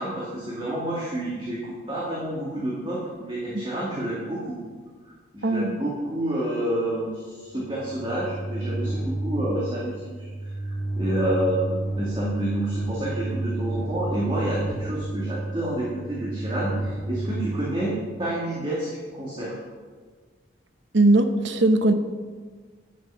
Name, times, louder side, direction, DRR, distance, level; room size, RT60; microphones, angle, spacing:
voice 1, 0.0-4.6 5.0-19.5, right 1 dB, 25° right, -6 dB, 2.0 m, -29 dB
voice 2, 5.4-5.8 20.9-21.9, right 2 dB, 65° right, 8 dB, 0.9 m, -20 dB
sound 1, 7.6-18.2, right 2 dB, 40° left, 1.8 m, -31 dB
10.5 x 8.8 x 5.6 m, 1.5 s
head